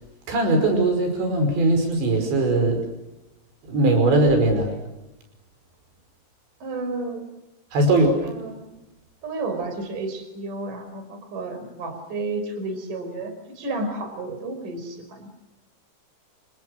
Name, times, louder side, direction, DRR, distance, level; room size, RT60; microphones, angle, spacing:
voice 1, 0.3-2.8 3.7-4.7 7.7-8.2, right 2 dB, 85° right, 5 dB, 7.5 m, -20 dB
voice 2, 6.6-7.3 8.2-8.7 9.2-15.3, right 2 dB, 50° right, 7 dB, 6.5 m, -32 dB
30.0 x 29.0 x 6.6 m, 0.95 s
omnidirectional pair, 5.0 m